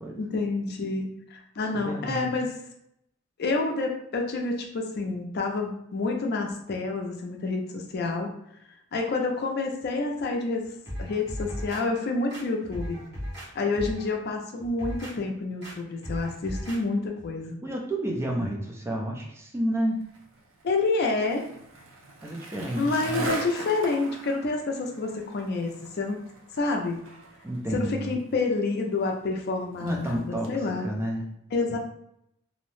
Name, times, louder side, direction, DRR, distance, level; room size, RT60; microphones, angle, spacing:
voice 1, 0.1-2.5 3.4-8.3 8.9-10.7 11.0-13.0 13.6-17.6 20.6-21.4 22.8-26.2 26.5-27.0 27.7-30.9 31.5-31.8, left 3 dB, 50° left, 2 dB, 0.4 m, -28 dB
voice 2, 1.8-2.4 17.6-20.0 22.2-23.3 27.4-28.1 29.8-30.5 30.8-31.2 31.7-31.8, right 1 dB, 15° right, 0 dB, 0.3 m, -30 dB
sound 1, 10.9-11.8 12.3-13.5 13.7-14.1 14.6-15.1 15.6-15.7 16.0-16.8 17.2-17.3, equal, 55° right, 1.0 m, -36 dB
Skateboard, 20.0-30.5, right 2 dB, 70° right, 0.5 m, -41 dB
2.6 x 2.0 x 3.0 m, 0.75 s
head